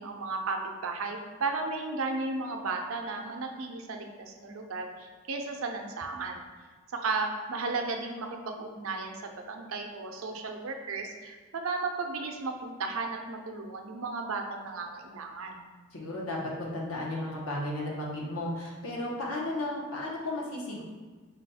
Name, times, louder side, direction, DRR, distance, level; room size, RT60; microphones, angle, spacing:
voice 1, 0.0-6.4 6.9-15.6, right 3 dB, 80° right, 3 dB, 0.5 m, -34 dB
voice 2, 15.9-20.8, left 1 dB, 85° left, -3 dB, 1.0 m, -34 dB
5.1 x 2.3 x 4.1 m, 1.4 s
head